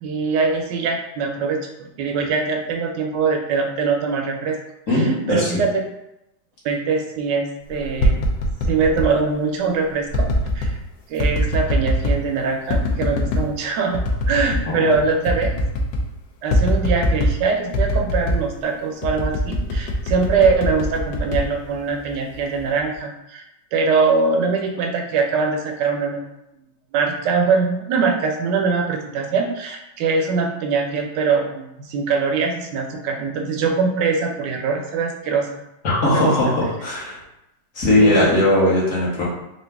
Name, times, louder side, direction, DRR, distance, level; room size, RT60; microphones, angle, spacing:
voice 1, 0.0-4.6 4.9-5.8 6.6-8.2 8.6-10.3 10.5-10.8 11.1-15.5 16.4-23.5 23.7-26.3 26.9-35.6 36.0-36.5 38.0-38.3, right 4 dB, 75° right, 2 dB, 1.1 m, -22 dB
voice 2, 4.9-5.5 14.6-14.7 35.8-37.2 37.7-39.2, left 1 dB, 45° left, -6 dB, 1.5 m, -18 dB
sound 1, 7.8-9.1 10.1-10.8 11.2-12.2 12.7-13.5 13.9-14.7 14.9-15.0 15.3-16.1 16.5-17.4 17.7-18.5 19.0-22.1 22.5-23.0, left 1 dB, 75° left, 1.3 m, -21 dB
3.8 x 2.7 x 3.4 m, 0.87 s
omnidirectional pair, 2.3 m